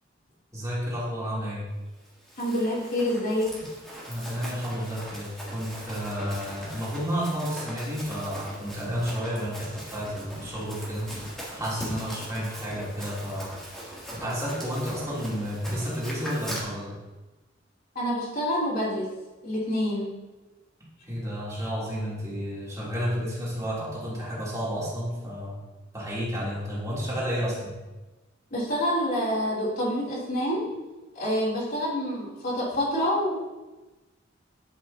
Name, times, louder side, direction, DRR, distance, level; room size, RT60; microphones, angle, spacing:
voice 1, 0.5-1.7 4.1-11.1 11.5-13.6 14.1-17.0 21.1-25.6 25.9-27.8, equal, 20° right, -8 dB, 3.2 m, -31 dB
Run, 2.0-16.6, equal, ahead, 2.9 m, -40 dB
voice 2, 2.4-3.5 17.9-19.1 19.4-20.1 28.5-30.6 31.1-33.4, equal, 50° left, -6 dB, 3.3 m, -27 dB
11.5 x 7.8 x 2.9 m, 1.1 s
head